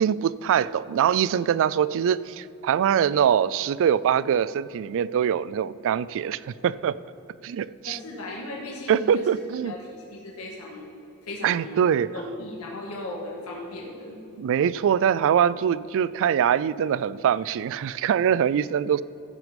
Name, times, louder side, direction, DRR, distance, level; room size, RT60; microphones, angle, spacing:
voice 1, 0.0-7.0 7.4-8.0 8.9-9.7 11.4-12.1 14.4-19.0, right 8 dB, 60° right, 19 dB, 0.3 m, -23 dB
voice 2, 7.8-10.9 11.2-14.2, left 1 dB, 70° left, -3 dB, 1.9 m, -37 dB
14.5 x 6.3 x 5.2 m, 2.7 s
head